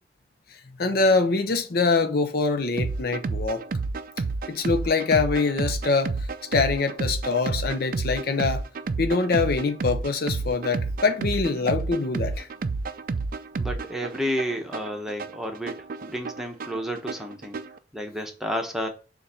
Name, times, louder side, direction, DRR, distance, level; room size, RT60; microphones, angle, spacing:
voice 1, 0.8-3.6 4.5-6.1 6.5-8.6 9.0-12.5, left 4 dB, 60° left, 0.7 m, -24 dB
sound 1, 2.8-17.8, right 3 dB, 50° right, 0.4 m, -30 dB
voice 2, 13.6-17.6 17.9-18.9, equal, ahead, 0.9 m, -31 dB
7.1 x 2.6 x 5.5 m
head